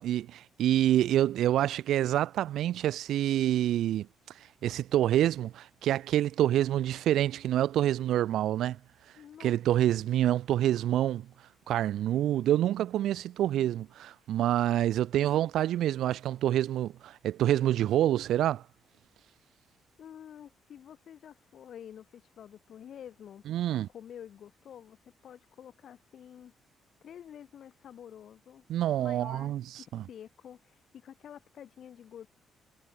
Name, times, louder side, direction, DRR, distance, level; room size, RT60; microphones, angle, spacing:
voice 1, 0.0-4.1 4.6-8.8 9.4-11.3 11.7-18.6 23.5-23.9 28.7-29.6 29.9-30.0, right 12 dB, 80° right, 0.6 m, -27 dB
voice 2, 9.2-9.6 9.9-10.1 20.0-23.4 23.9-25.0 25.2-26.5 27.0-28.6 29.0-32.3, left 9 dB, 65° left, 3.6 m, -49 dB
cardioid pair, 90°, 0 cm